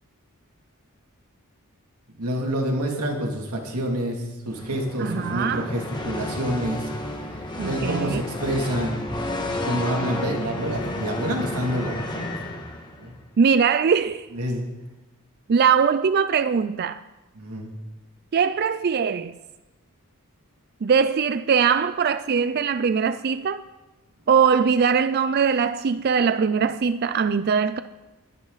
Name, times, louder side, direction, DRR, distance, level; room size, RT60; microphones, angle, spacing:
voice 1, 2.2-6.9 7.7-9.0 9.5-12.4 13.0-13.1 14.3-14.7 17.4-17.7, equal, 90° right, 2.7 m, -28 dB
sound 1, 4.5-13.1, left 1 dB, 20° left, 1.6 m, -31 dB
voice 2, 5.0-5.7 7.6-8.2 13.4-14.3 15.5-17.0 18.3-19.4 20.8-23.6 24.3-27.8, right 6 dB, 45° right, 0.4 m, -21 dB
21.0 x 11.0 x 4.1 m
head